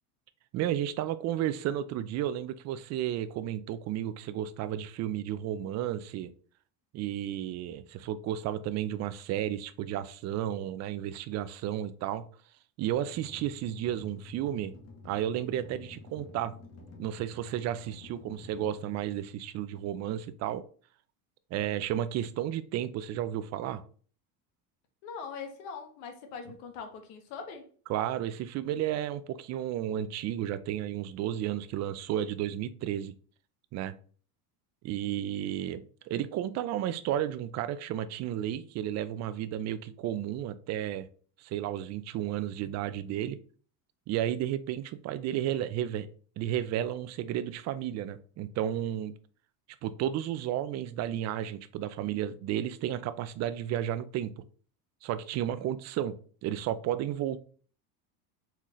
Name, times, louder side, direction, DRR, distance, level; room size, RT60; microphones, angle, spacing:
voice 1, 0.5-6.3 6.9-12.2 12.8-14.7 15.0-16.5 17.0-20.6 21.5-23.8 27.9-33.1 33.7-33.9 34.8-41.1 41.4-43.4 44.1-46.1 46.4-49.1 49.8-54.3 55.0-57.4, right 11 dB, 35° right, 13 dB, 0.4 m, -32 dB
sound 1, 12.9-19.8, left 2 dB, 35° left, 1.2 m, -50 dB
voice 2, 25.0-27.6, left 5 dB, 70° left, 5 dB, 1.4 m, -42 dB
4.2 x 3.7 x 3.1 m, 0.43 s
supercardioid pair, 105°, 46 cm